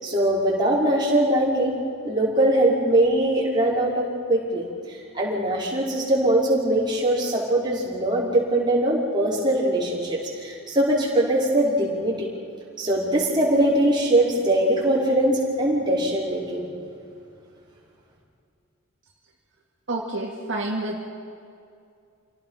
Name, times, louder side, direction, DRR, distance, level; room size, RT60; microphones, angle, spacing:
voice 1, 0.0-1.8 2.0-12.3 12.8-16.7, right 1 dB, 20° right, -5 dB, 5.3 m, -22 dB
voice 2, 19.9-21.1, right 2 dB, 60° right, -2 dB, 2.3 m, -29 dB
28.0 x 18.0 x 5.8 m, 2.4 s
head